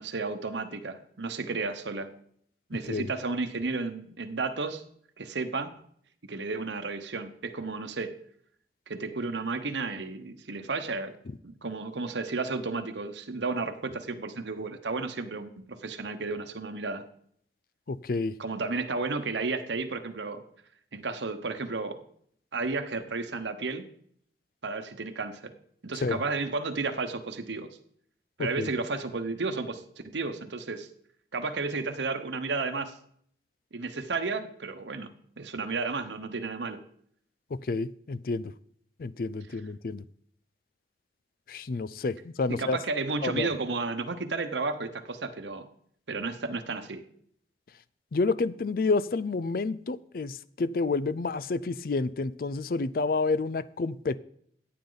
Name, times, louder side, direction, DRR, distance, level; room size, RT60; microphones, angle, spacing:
voice 1, 0.0-2.1 2.7-4.8 5.2-5.7 6.2-8.1 8.9-11.1 11.4-17.0 18.4-20.4 20.9-22.0 22.5-23.9 24.6-25.5 25.8-27.7 28.4-30.9 31.3-32.9 33.7-36.8 39.5-39.6 42.5-45.7 46.1-47.0, right 3 dB, 90° right, 7 dB, 1.0 m, -33 dB
voice 2, 17.9-18.3 26.0-26.2 28.4-28.7 37.7-38.5 39.0-40.0 41.5-42.8 43.2-43.5 48.1-54.2, left 3 dB, 55° left, 18 dB, 0.4 m, -29 dB
14.5 x 8.7 x 4.0 m, 0.64 s
head